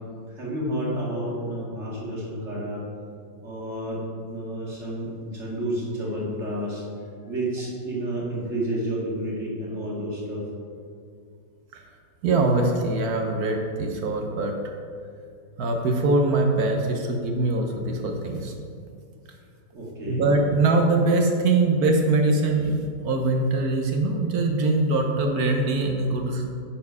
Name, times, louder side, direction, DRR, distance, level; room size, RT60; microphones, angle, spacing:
voice 1, 0.3-2.8 3.4-4.0 4.3-6.8 7.3-10.4 19.7-20.2, right 1 dB, 35° right, -5 dB, 2.1 m, -30 dB
voice 2, 12.2-14.5 15.6-18.5 20.1-26.5, right 2 dB, 60° right, 3 dB, 1.1 m, -22 dB
9.4 x 4.4 x 5.5 m, 2.3 s
omnidirectional pair, 2.1 m